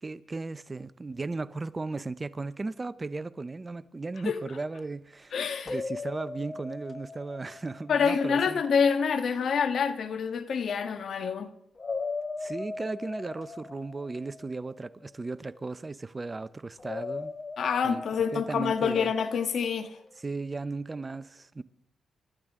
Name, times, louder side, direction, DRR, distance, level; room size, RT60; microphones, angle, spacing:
voice 1, 0.0-8.6 12.4-17.3 17.8-18.0 18.3-19.1 20.2-21.6, right 3 dB, 25° right, 0.7 m, -36 dB
voice 2, 5.3-5.7 7.9-11.5 17.6-20.0, left 6 dB, 65° left, 1.5 m, -27 dB
sound 1, 5.7-8.6 11.8-15.1 16.8-19.6, left 4 dB, 30° left, 1.0 m, -39 dB
29.5 x 13.5 x 3.7 m
cardioid pair, 75°, 0 cm